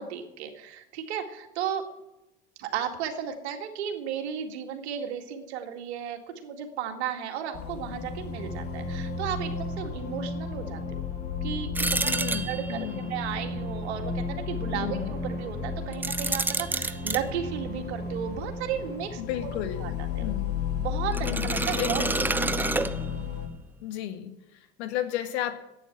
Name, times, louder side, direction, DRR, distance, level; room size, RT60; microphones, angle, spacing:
voice 1, 0.0-1.9 2.6-11.0 11.4-19.5 19.8-19.9 20.2-20.3 20.7-22.0 22.3-22.7, right 8 dB, 80° right, 5 dB, 2.1 m, -34 dB
sound 1, 7.5-23.5, left 5 dB, 45° left, 2.6 m, -33 dB
sound 2, 11.8-12.9 15.9-17.2 21.1-23.4, right 2 dB, 5° right, 0.5 m, -29 dB
voice 2, 12.0-13.1 14.7-15.1 19.2-20.5 21.2-22.1 23.8-25.6, left 11 dB, 80° left, 9 dB, 1.7 m, -34 dB
sound 3, 12.5-19.0, right 4 dB, 30° right, 2.0 m, -46 dB
11.0 x 9.0 x 8.6 m, 0.91 s
supercardioid pair, 110°, 32 cm